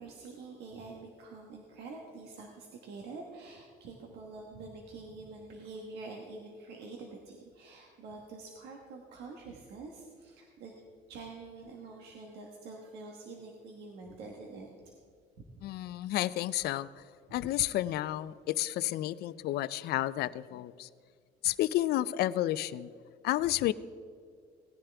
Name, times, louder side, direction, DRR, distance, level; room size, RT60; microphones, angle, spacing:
voice 1, 0.0-10.8 11.1-14.7 15.5-15.6 17.3-17.4, right 3 dB, 80° right, 1 dB, 1.4 m, -46 dB
voice 2, 15.6-17.0 17.3-20.9 21.4-22.9 23.2-23.7, left 14 dB, 70° left, 17 dB, 0.5 m, -31 dB
18.0 x 10.0 x 3.5 m, 2.2 s
cardioid pair, 110°, 17 cm